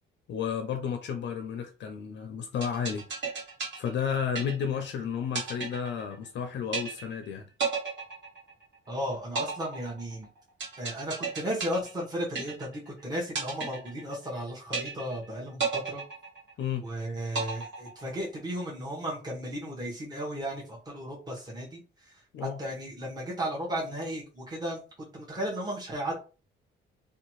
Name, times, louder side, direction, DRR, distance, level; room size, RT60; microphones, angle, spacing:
voice 1, 0.3-3.3 3.8-7.5 16.6-16.8 22.3-22.6, left 7 dB, 65° left, 0.5 m, -32 dB
sound 1, 2.6-4.9 5.3-6.4 6.7-7.3 7.6-8.9 9.4-12.9 13.4-14.4 14.7-15.3 15.6-16.9 17.3-18.4, right 5 dB, 65° right, 1.3 m, -34 dB
voice 2, 8.9-10.3 10.8-16.0 16.8-26.2, equal, 20° right, 1.0 m, -35 dB
2.7 x 2.3 x 3.0 m
cardioid pair, 90°, 20 cm